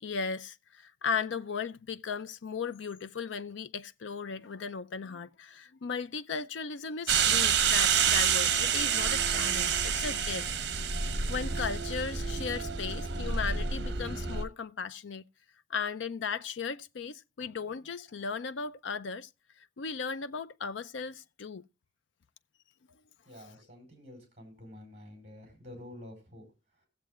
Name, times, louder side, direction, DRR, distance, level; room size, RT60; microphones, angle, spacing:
voice 1, 0.0-10.5 11.3-15.2 15.7-19.3 19.6-21.6, left 5 dB, 85° left, 0.5 m, -36 dB
sound 1, 7.1-14.4, right 7 dB, 65° right, 1.1 m, -28 dB
voice 2, 23.3-26.4, left 1 dB, 35° right, 4.5 m, -49 dB
18.5 x 7.4 x 2.4 m
head